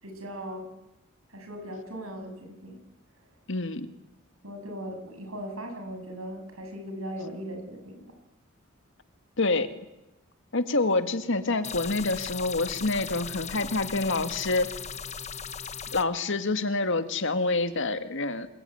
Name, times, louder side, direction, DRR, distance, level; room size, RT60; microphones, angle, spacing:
voice 1, 0.0-0.7 1.3-2.8 4.4-8.1, equal, 85° right, 4 dB, 7.8 m, -38 dB
voice 2, 3.5-3.9 9.4-9.7 10.5-14.7 15.9-18.5, left 3 dB, 65° left, 9 dB, 2.1 m, -27 dB
sound 1, 11.6-16.0, left 6 dB, 35° left, 1.1 m, -38 dB
28.0 x 22.0 x 9.5 m, 0.95 s
head